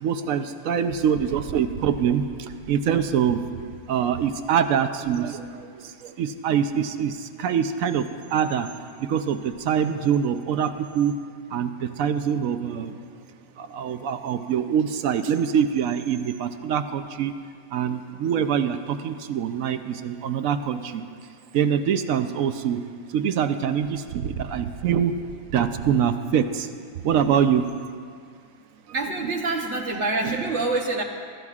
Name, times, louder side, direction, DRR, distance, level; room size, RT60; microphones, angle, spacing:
voice 1, 0.0-3.4 3.9-8.7 9.0-11.2 11.5-13.0 13.6-17.3 17.7-21.1 21.5-22.8 23.1-25.1 25.5-26.7 27.0-27.7, right 8 dB, 75° right, 9 dB, 1.1 m, -24 dB
voice 2, 28.9-31.0, right 3 dB, 60° right, 1 dB, 1.1 m, -26 dB
23.0 x 13.5 x 2.4 m, 2.1 s
omnidirectional pair, 1.4 m